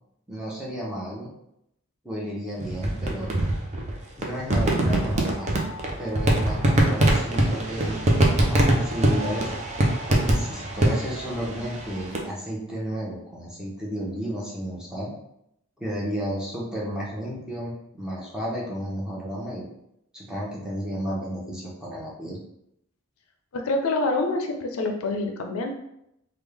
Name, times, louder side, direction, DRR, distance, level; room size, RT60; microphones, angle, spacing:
voice 1, 0.3-1.3 2.0-3.4 4.2-5.5 6.0-8.0 8.3-9.5 9.8-15.1 15.8-19.6 20.1-22.4, equal, 5° right, -6 dB, 0.9 m, -32 dB
sound 1, 2.6-12.2, right 1 dB, 35° right, 0.6 m, -23 dB
voice 2, 23.5-25.7, left 2 dB, 80° left, 3 dB, 0.5 m, -26 dB
3.5 x 2.3 x 3.3 m, 0.79 s
head